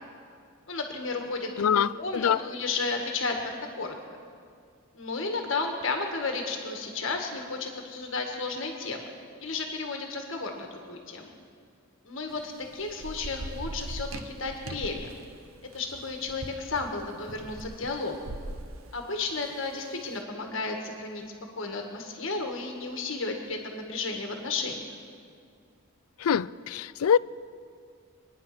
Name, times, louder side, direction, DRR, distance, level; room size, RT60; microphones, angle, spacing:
voice 1, 0.7-4.0 4.9-9.0 9.4-11.3 12.1-15.1 15.7-18.4 18.9-21.2 21.6-24.9, left 3 dB, 60° left, 1.6 m, -33 dB
voice 2, 1.6-2.4 26.2-27.2, left 8 dB, 85° left, 0.4 m, -24 dB
Thunder / Rain, 12.3-19.9, right 1 dB, 75° right, 0.9 m, -41 dB
24.0 x 10.0 x 6.0 m
head